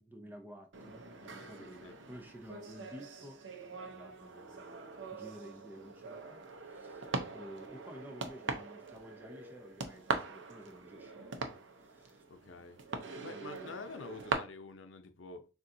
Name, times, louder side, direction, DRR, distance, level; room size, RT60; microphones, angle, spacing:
voice 1, 0.0-4.7 5.1-12.2 13.3-13.9, equal, 10° right, 0.5 m, -52 dB
sound 1, 0.7-14.3, right 4 dB, 75° right, 0.7 m, -42 dB
voice 2, 1.4-2.0 12.3-12.8 13.1-15.5, left 3 dB, 85° left, 0.6 m, -48 dB
6.5 x 2.5 x 2.7 m
head